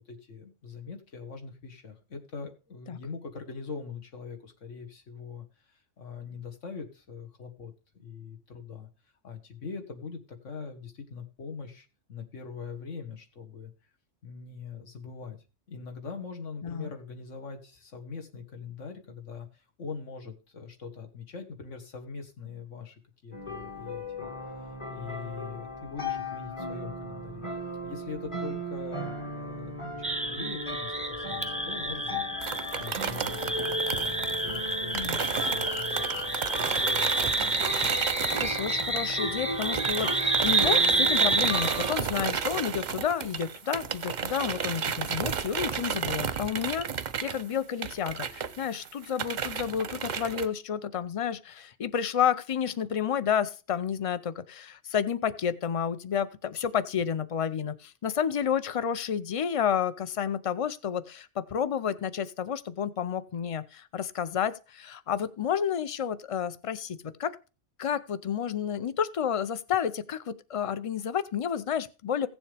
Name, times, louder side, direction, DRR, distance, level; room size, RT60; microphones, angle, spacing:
voice 1, 0.1-8.9 9.2-13.7 14.2-15.4 15.7-24.3 24.9-27.5 27.8-37.6, left 5 dB, 75° left, 4 dB, 1.9 m, -42 dB
sound 1, 23.3-41.9, left 1 dB, 25° left, 1.2 m, -37 dB
sound 2, 30.0-41.9, right 2 dB, 5° right, 0.8 m, -29 dB
sound 3, 32.4-39.3 39.6-50.5, right 7 dB, 45° right, 0.7 m, -33 dB
voice 2, 38.4-46.9 47.2-67.3 67.8-72.3, left 8 dB, 40° left, 14 dB, 0.5 m, -30 dB
16.0 x 7.2 x 3.4 m, 0.32 s
omnidirectional pair, 1.3 m